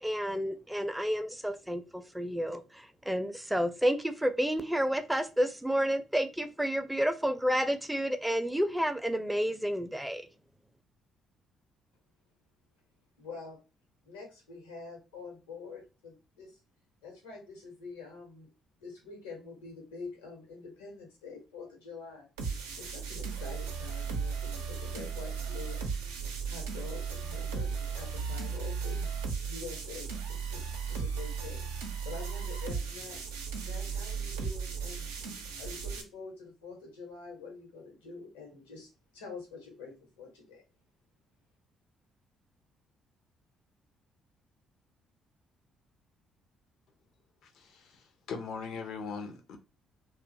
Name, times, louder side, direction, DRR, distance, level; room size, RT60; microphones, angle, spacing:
voice 1, 0.0-10.3, equal, 5° right, 0.5 m, -30 dB
voice 2, 13.2-13.6 14.0-16.6 17.0-18.5 18.8-22.3 22.8-25.9 26.4-29.1 29.4-33.2 33.6-35.1 35.6-40.6, left 4 dB, 85° left, 1.0 m, -46 dB
sound 1, 22.4-36.0, right 6 dB, 85° right, 0.5 m, -36 dB
voice 3, 47.4-49.6, left 5 dB, 65° left, 0.6 m, -40 dB
2.7 x 2.3 x 2.6 m
hypercardioid pair, 50°, 0 cm